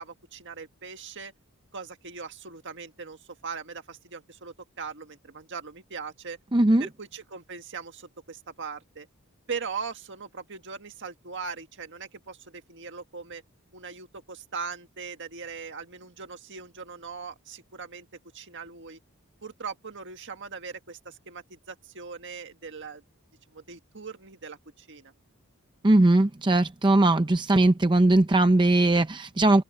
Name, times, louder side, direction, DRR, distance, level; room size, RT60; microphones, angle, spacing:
voice 1, 0.0-1.3 1.7-6.4 6.8-9.1 9.5-13.4 13.7-18.1 18.3-19.0 19.4-23.0 23.5-25.1, right 5 dB, 55° right, 1.8 m, -40 dB
voice 2, 6.5-6.9 25.8-29.6, right 2 dB, 20° right, 0.6 m, -20 dB
open air
head